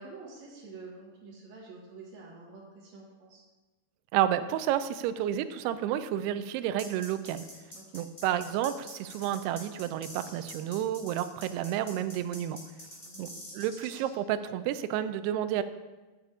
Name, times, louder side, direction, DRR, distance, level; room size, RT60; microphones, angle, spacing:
voice 1, 0.0-3.4 7.7-8.0 13.0-13.3, right 3 dB, 55° right, -3 dB, 2.4 m, -48 dB
voice 2, 4.1-7.5 7.9-12.6 13.2-15.6, right 11 dB, 85° right, 11 dB, 2.6 m, -30 dB
sound 1, 6.8-14.1, equal, 15° left, 3.2 m, -45 dB
9.5 x 6.7 x 4.8 m, 1.2 s
omnidirectional pair, 4.6 m